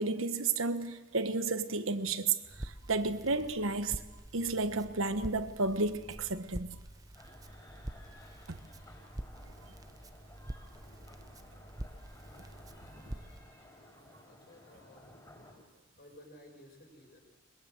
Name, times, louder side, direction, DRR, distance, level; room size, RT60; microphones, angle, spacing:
voice 1, 0.0-4.0 4.3-6.8 8.5-8.6, right 3 dB, 90° right, 1.4 m, -32 dB
Crackle, 2.5-13.4, right 1 dB, 20° right, 0.8 m, -46 dB
sound 1, 7.1-15.5, left 1 dB, 20° left, 7.2 m, -56 dB
voice 2, 12.8-13.3 14.2-15.1 16.0-17.2, left 1 dB, 50° left, 6.4 m, -56 dB
22.5 x 22.0 x 8.0 m
head